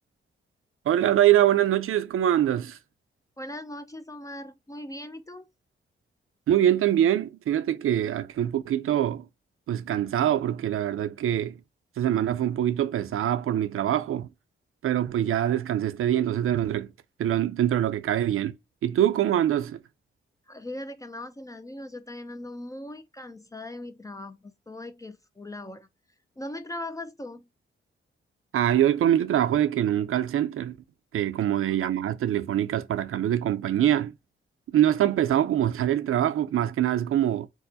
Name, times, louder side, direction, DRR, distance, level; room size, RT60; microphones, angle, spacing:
voice 1, 0.9-2.8 6.5-9.3 9.7-11.6 12.0-14.3 14.8-16.9 17.2-18.5 18.8-19.8 28.5-30.8 31.1-34.1 34.7-37.5, right 11 dB, 85° right, 0.5 m, -24 dB
voice 2, 3.4-5.4 20.5-25.9 26.4-27.5 31.5-31.8, left 1 dB, 15° left, 0.3 m, -39 dB
4.6 x 2.1 x 2.7 m
wide cardioid pair, 130°, 21 cm